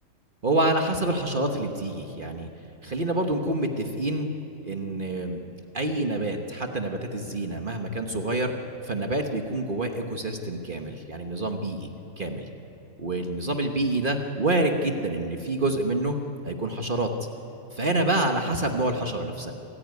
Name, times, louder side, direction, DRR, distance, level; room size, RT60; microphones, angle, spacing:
voice 1, 0.4-2.5 2.8-4.3 4.6-5.4 5.7-8.5 8.8-11.9 12.2-12.5 13.0-16.2 16.5-17.1 17.7-19.5, right 2 dB, 35° right, 4 dB, 1.3 m, -27 dB
24.5 x 14.5 x 9.5 m, 2.9 s
omnidirectional pair, 1.6 m